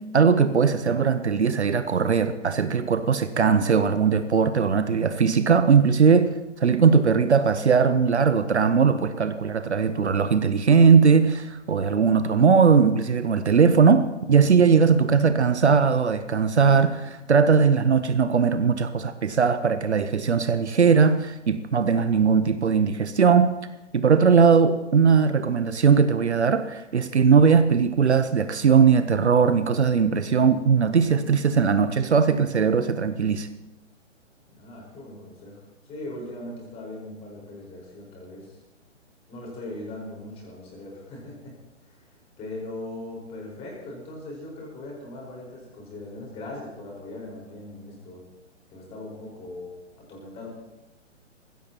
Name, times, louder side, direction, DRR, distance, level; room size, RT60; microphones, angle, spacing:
voice 1, 0.1-6.3 6.6-23.5 23.9-33.5, right 6 dB, 60° right, 11 dB, 0.9 m, -19 dB
voice 2, 34.6-38.6 39.3-41.5 41.8-48.2 48.7-50.5, left 2 dB, 15° left, -2 dB, 4.7 m, -40 dB
19.5 x 16.0 x 2.9 m, 0.99 s
figure-of-eight pair, 130°, 37 cm